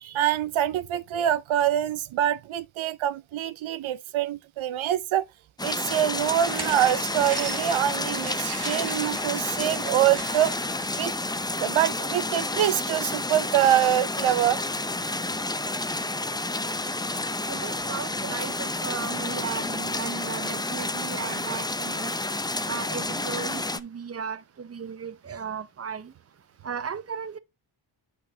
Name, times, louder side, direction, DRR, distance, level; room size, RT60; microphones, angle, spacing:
voice 1, 0.0-5.3 5.6-10.5 11.0-11.1 11.6-14.6, right 11 dB, 80° right, 0.5 m, -25 dB
sound 1, 5.6-23.8, left 2 dB, 10° left, 0.6 m, -30 dB
sound 2, 6.1-12.9, right 4 dB, 55° right, 1.6 m, -39 dB
voice 2, 17.4-22.3 22.6-27.4, right 6 dB, 30° right, 0.7 m, -36 dB
8.1 x 5.8 x 2.7 m
cardioid pair, 50°, 47 cm